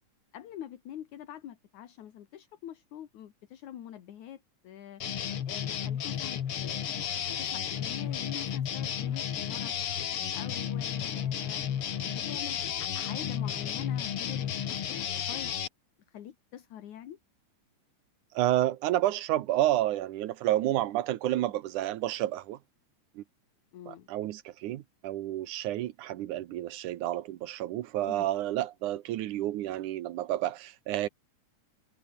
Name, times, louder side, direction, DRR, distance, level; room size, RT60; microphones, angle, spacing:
voice 1, 0.3-5.0 5.5-7.0 7.4-9.7 10.3-15.5 16.1-17.2 23.7-24.1 28.1-28.3, left 11 dB, 70° left, 3.0 m, -45 dB
sound 1, 5.0-15.7, left 9 dB, 50° left, 2.1 m, -33 dB
voice 2, 18.3-22.6 23.2-23.3 23.9-31.1, right 14 dB, 75° right, 2.5 m, -30 dB
omnidirectional pair, 3.7 m